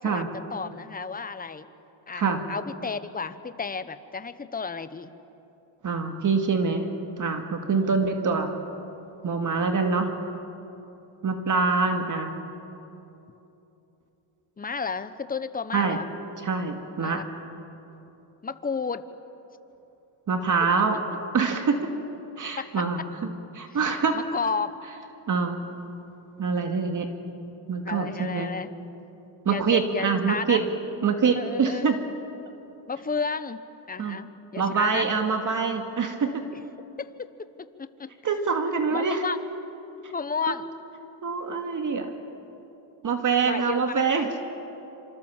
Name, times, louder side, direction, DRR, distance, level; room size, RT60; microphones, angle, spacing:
voice 1, 0.0-1.7 2.1-5.2 7.7-7.9 14.6-16.1 17.0-17.2 18.4-19.0 22.6-22.9 23.7-23.8 24.1-24.7 27.8-28.7 29.5-30.6 31.3-31.9 32.9-33.6 33.9-35.1 37.0-37.3 37.8-38.1 38.9-39.4 40.1-40.7 43.4-44.0, left 5 dB, 20° left, 12 dB, 1.1 m, -32 dB
voice 2, 5.8-6.8 7.2-8.5 9.2-10.1 11.2-12.3 15.7-16.0 16.4-17.2 20.3-21.0 21.3-21.9 22.4-23.0 23.5-24.2 25.3-25.6 26.4-27.1 27.7-28.5 29.5-30.6 31.0-32.0 34.0-34.2 34.6-36.4 38.2-39.2 40.5-40.6 41.2-42.1 43.0-44.4, right 5 dB, 40° right, 5 dB, 2.3 m, -25 dB
26.5 x 25.5 x 7.4 m, 3.0 s
cardioid pair, 100°, 49 cm